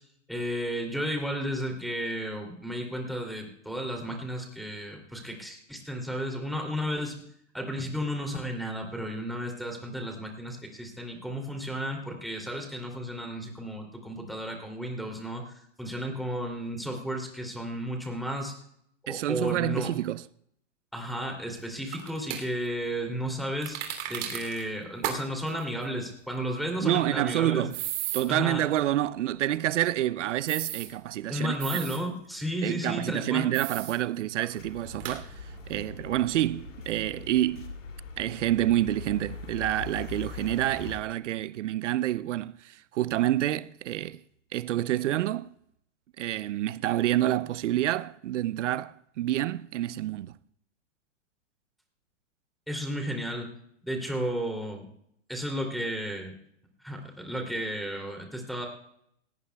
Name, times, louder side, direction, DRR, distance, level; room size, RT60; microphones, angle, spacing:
voice 1, 0.3-7.1 7.5-15.4 15.8-18.5 19.1-19.9 20.9-23.8 24.1-27.6 28.3-28.6 31.3-33.5 52.7-53.5 53.8-54.9 55.3-56.3 56.8-58.7, equal, ahead, 2.7 m, -33 dB
voice 2, 19.1-20.2 26.8-27.8 28.1-31.5 32.6-37.7 38.2-44.2 44.5-45.5 46.2-50.3, right 13 dB, 75° right, 0.6 m, -28 dB
sound 1, 21.9-22.4 23.6-24.6 25.0-25.2 25.5-25.6 27.7-28.2 30.5-30.9 31.6-32.0 33.5-34.0 34.4-34.5 35.0-35.2, right 12 dB, 45° right, 3.0 m, -34 dB
sound 2, 34.6-41.0, left 5 dB, 85° left, 2.8 m, -42 dB
18.5 x 17.5 x 2.3 m
hypercardioid pair, 135°, 37 cm